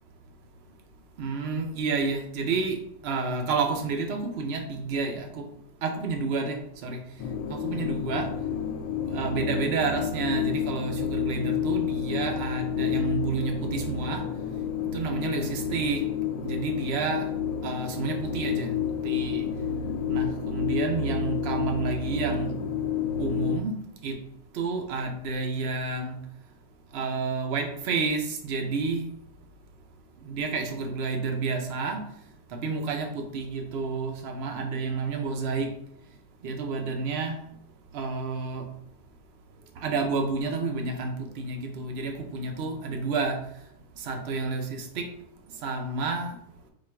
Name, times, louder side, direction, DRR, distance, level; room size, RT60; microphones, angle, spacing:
voice 1, 1.2-5.4 5.8-7.0 7.5-8.3 9.1-14.2 14.9-16.1 16.4-17.3 17.6-18.7 19.0-19.5 20.1-22.5 23.2-23.7 24.0-24.1 24.5-26.2 26.9-29.1 30.2-32.0 32.6-35.7 36.4-37.4 37.9-38.7 39.8-43.4 44.0-45.1 45.6-46.4, right 4 dB, 65° right, 4 dB, 0.6 m, -30 dB
sound 1, 7.2-23.6, left 8 dB, 75° left, 1.0 m, -30 dB
4.4 x 2.4 x 4.3 m, 0.73 s
omnidirectional pair, 1.9 m